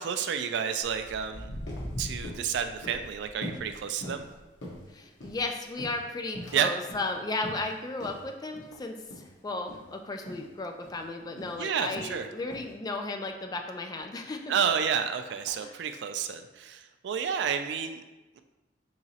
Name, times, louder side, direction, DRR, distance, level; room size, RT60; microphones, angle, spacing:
voice 1, 0.0-1.5 2.0-4.3 6.5-6.7 11.6-12.3 14.5-18.0, right 7 dB, 65° right, 8 dB, 0.3 m, -30 dB
Walk footsteps, 0.8-7.5 7.8-8.2 8.7-8.8 9.5-9.6 10.0-10.1 10.2-10.3 10.9-11.1 11.7-13.3 13.9-14.0 14.7-14.8 15.3-15.5 16.2-16.3, equal, 60° left, 0.7 m, -43 dB
sound 1, 1.3-1.4 1.7-1.9 2.2-2.5 2.8-3.1 3.4-3.7 4.0-4.3 4.6-5.4 5.8-6.6 6.9-7.1 7.4-7.7 8.0-8.2 8.5-8.7 9.1-9.3 9.6-9.8 10.3-10.5 10.8-11.0 11.4-11.6 11.9-12.2 12.5-12.7, equal, 90° left, 1.1 m, -42 dB
voice 2, 4.9-9.0 9.4-14.5 15.6-15.8, left 2 dB, 20° left, 4 dB, 0.3 m, -35 dB
4.7 x 3.0 x 2.8 m, 1.1 s
head